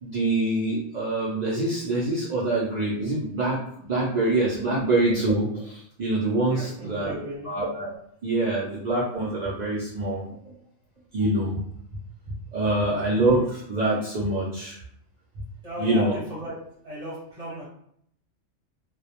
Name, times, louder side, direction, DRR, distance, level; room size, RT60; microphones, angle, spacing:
voice 1, 0.0-7.9 8.2-10.2 11.1-11.6 12.5-14.8 15.8-16.2, right 2 dB, 70° right, -6 dB, 0.4 m, -25 dB
voice 2, 6.5-7.5 10.3-10.6 12.8-13.2 15.6-16.5 16.8-17.6, equal, 35° right, -7 dB, 0.7 m, -36 dB
2.2 x 2.0 x 2.8 m, 0.69 s
omnidirectional pair, 1.3 m